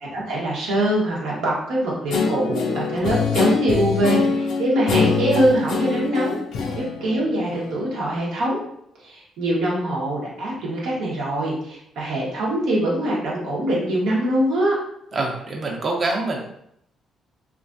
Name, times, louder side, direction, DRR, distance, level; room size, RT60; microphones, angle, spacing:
voice 1, 0.0-6.4 6.7-8.6 9.0-14.7, right 1 dB, 85° right, -4 dB, 1.0 m, -23 dB
Guitar, 2.1-7.9, left 5 dB, 80° left, 0.4 m, -24 dB
voice 2, 15.1-16.4, right 2 dB, 45° right, 0 dB, 0.7 m, -25 dB
3.0 x 2.4 x 2.5 m, 0.73 s
cardioid pair, 90°, 0 cm